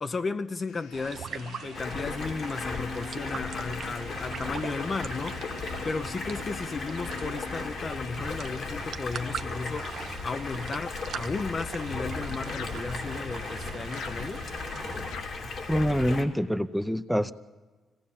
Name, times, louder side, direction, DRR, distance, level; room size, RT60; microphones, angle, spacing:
voice 1, 0.0-14.5, left 4 dB, 35° left, 0.7 m, -34 dB
sound 1, 0.7-12.2 12.5-16.4, left 7 dB, 85° left, 1.2 m, -47 dB
sound 2, 0.9-15.1, right 8 dB, 65° right, 0.8 m, -42 dB
Stream, 1.7-16.2, left 3 dB, 60° left, 2.5 m, -36 dB
voice 2, 15.7-17.3, equal, ahead, 0.7 m, -26 dB
25.5 x 18.0 x 7.2 m
cardioid pair, 90°, 0 cm